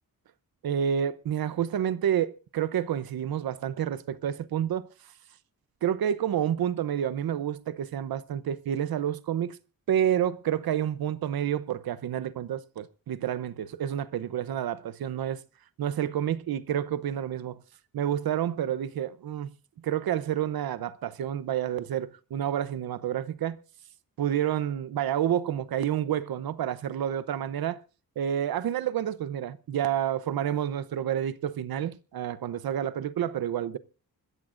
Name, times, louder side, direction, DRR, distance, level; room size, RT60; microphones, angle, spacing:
voice 1, 0.6-4.9 5.8-9.6 9.9-15.4 15.8-17.6 17.9-19.5 19.8-23.6 24.2-27.8 28.2-33.8, right 10 dB, 90° right, 0.8 m, -29 dB
26.0 x 14.0 x 2.5 m
wide cardioid pair, 165°, 35 cm